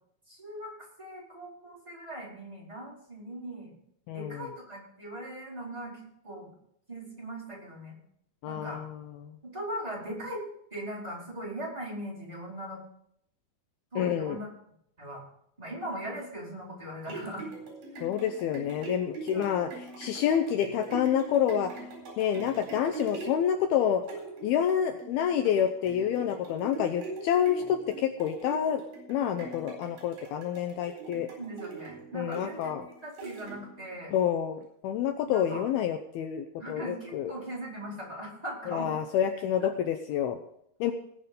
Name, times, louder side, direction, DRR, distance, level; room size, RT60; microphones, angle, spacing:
voice 1, 0.3-0.7 1.0-3.8 4.1-6.5 6.9-8.0 8.4-8.8 9.4-10.4 10.7-12.8 13.9-14.5 15.0-15.2 15.6-17.5 17.9-18.1 19.3-19.7 31.4-32.8 33.0-34.1 35.3-35.7 36.6-39.0 39.6-39.7, right 1 dB, 10° right, -6 dB, 4.4 m, -39 dB
voice 2, 4.1-4.5 8.4-9.3 14.0-14.4 18.0-19.7 20.0-21.7 22.2-24.0 24.4-28.8 29.1-31.3 32.1-32.8 34.1-37.3 38.7-40.4 40.8-40.9, left 9 dB, 75° left, 6 dB, 2.5 m, -28 dB
sound 1, 16.8-33.9 34.4-34.5, right 3 dB, 50° right, 5.5 m, -43 dB
20.0 x 6.7 x 5.3 m, 0.72 s
omnidirectional pair, 4.8 m